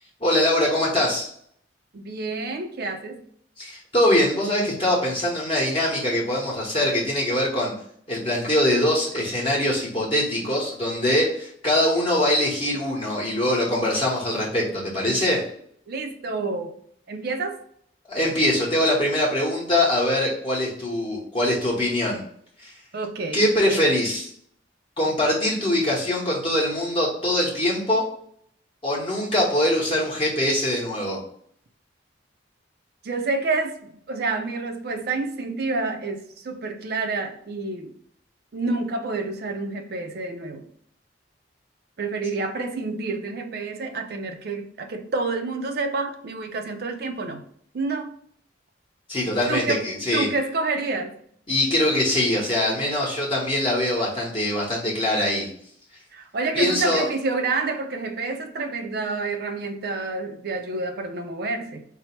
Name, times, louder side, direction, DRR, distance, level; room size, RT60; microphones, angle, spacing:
voice 1, 0.2-1.3 3.6-7.7 8.1-15.4 18.1-22.2 22.6-22.7 23.3-24.3 25.0-28.0 28.8-31.2 49.1-50.3 51.5-55.5 56.5-57.0, left 1 dB, 30° left, 0.9 m, -23 dB
voice 2, 1.9-3.2 15.9-16.7 17.1-17.6 22.9-23.4 33.0-37.9 38.5-40.7 42.0-47.4 47.7-48.1 49.5-51.1 56.1-61.8, right 3 dB, 55° right, 0.4 m, -28 dB
4.3 x 2.0 x 4.3 m
head